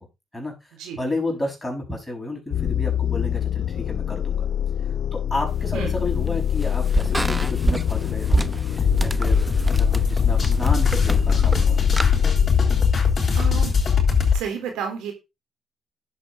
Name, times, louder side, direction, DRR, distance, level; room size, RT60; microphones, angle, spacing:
voice 1, 1.0-4.5 5.1-11.8, left 2 dB, 10° left, 0 dB, 5.9 m, -31 dB
sound 1, 2.5-12.9, left 9 dB, 65° left, 0.7 m, -25 dB
sound 2, 5.5-12.1, right 1 dB, 10° right, 0.7 m, -28 dB
sound 3, 8.8-14.4, left 5 dB, 35° left, 5.1 m, -20 dB
voice 2, 13.3-13.7 14.3-15.1, right 7 dB, 90° right, 4 dB, 4.1 m, -31 dB
10.5 x 7.7 x 4.1 m, 0.25 s
cardioid pair, 90°, 0 cm